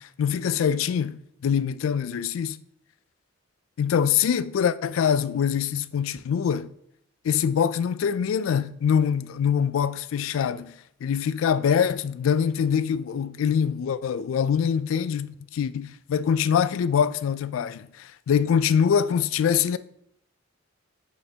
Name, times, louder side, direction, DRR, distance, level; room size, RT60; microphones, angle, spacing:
voice 1, 0.0-2.6 3.8-6.7 7.2-10.7 11.0-19.8, left 7 dB, 75° left, 0.3 m, -24 dB
8.2 x 4.2 x 2.9 m
head